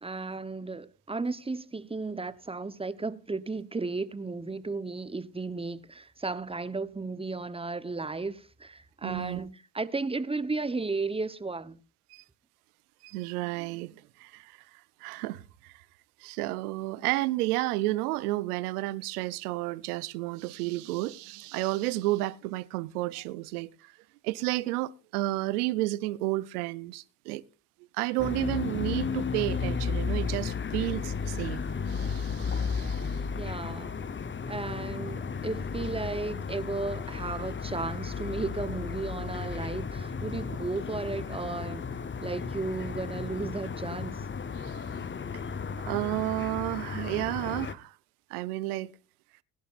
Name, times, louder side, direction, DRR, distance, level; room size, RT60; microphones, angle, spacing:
voice 1, 0.0-11.8 33.4-34.0 34.5-41.9 42.2-44.2, right 3 dB, 15° right, 1.0 m, -34 dB
voice 2, 9.0-9.5 12.1-12.2 13.0-15.8 16.2-23.9 24.2-27.4 27.9-33.3 44.6-44.8 45.9-47.9 48.3-48.9, right 18 dB, 85° right, 0.7 m, -32 dB
sound 1, 28.2-47.7, left 5 dB, 25° left, 1.0 m, -34 dB
20.0 x 11.0 x 2.5 m
hypercardioid pair, 55°, 44 cm